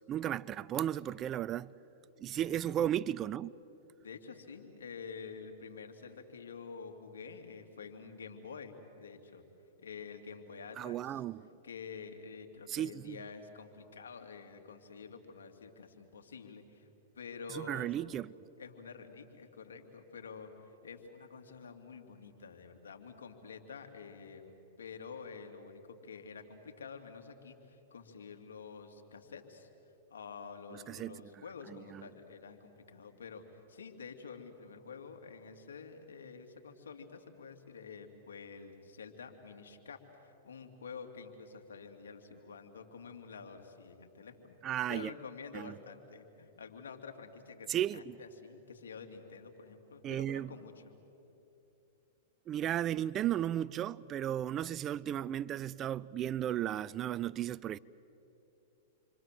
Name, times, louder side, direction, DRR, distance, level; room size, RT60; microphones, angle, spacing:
voice 1, 0.1-1.7 2.2-3.5 10.8-11.5 12.7-13.2 17.5-18.3 30.9-31.2 31.7-32.1 44.6-45.1 45.5-45.7 47.7-48.2 50.0-50.5 52.5-57.8, right 11 dB, 30° right, 0.5 m, -35 dB
voice 2, 4.0-9.4 9.8-11.2 11.6-16.9 17.1-17.9 18.6-29.7 30.1-40.0 40.2-44.6 44.9-50.9, left 5 dB, 85° left, 2.8 m, -48 dB
29.0 x 24.5 x 7.7 m
hypercardioid pair, 120°, 0 cm